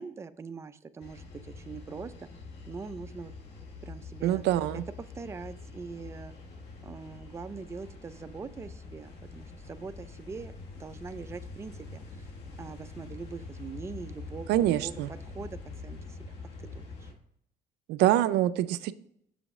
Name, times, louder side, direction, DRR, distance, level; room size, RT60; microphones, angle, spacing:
voice 1, 0.0-2.3 2.7-3.3 3.8-4.4 4.7-4.8 5.1-6.3 6.8-12.3 12.6-14.9 15.3-16.3 16.6-17.1, right 5 dB, 15° right, 11 dB, 0.4 m, -43 dB
sound 1, 1.0-17.1, left 3 dB, 80° left, 1.3 m, -45 dB
voice 2, 4.2-4.8 14.5-15.1 17.9-18.9, right 13 dB, 80° right, 14 dB, 0.4 m, -25 dB
6.8 x 5.1 x 3.6 m, 0.74 s
cardioid pair, 110°, 17 cm